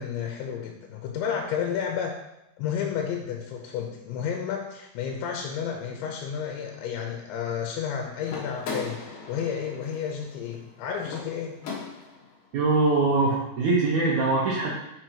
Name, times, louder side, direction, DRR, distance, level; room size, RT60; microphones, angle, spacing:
voice 1, 0.0-2.2 2.6-11.6, left 7 dB, 85° left, 2 dB, 3.1 m, -31 dB
sound 1, 8.2-12.3, left 4 dB, 60° left, 2.6 m, -39 dB
voice 2, 12.5-14.7, right 3 dB, 80° right, -5 dB, 1.8 m, -22 dB
9.1 x 6.8 x 3.0 m, 0.85 s
omnidirectional pair, 5.2 m